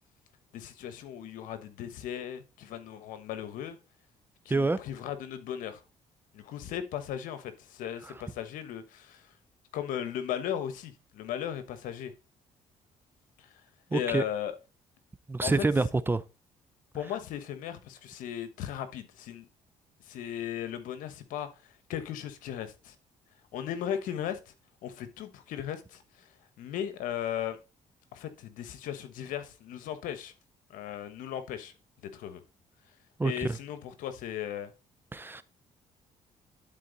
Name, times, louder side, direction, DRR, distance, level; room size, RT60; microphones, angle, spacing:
voice 1, 0.5-3.8 4.4-5.8 6.3-9.3 9.7-12.1 13.4-13.5 13.9-14.6 15.4-15.5 16.9-19.5 20.1-21.5 21.9-22.9 23.5-24.4 24.8-26.3 26.6-27.6 28.1-30.3 30.7-31.7 32.1-32.4 33.2-34.7, left 10 dB, 85° left, 1.2 m, -36 dB
voice 2, 13.9-14.2 15.3-16.2 33.2-33.6 35.1-35.4, right 3 dB, 15° right, 0.6 m, -27 dB
11.5 x 4.4 x 4.0 m
cardioid pair, 90°, 13 cm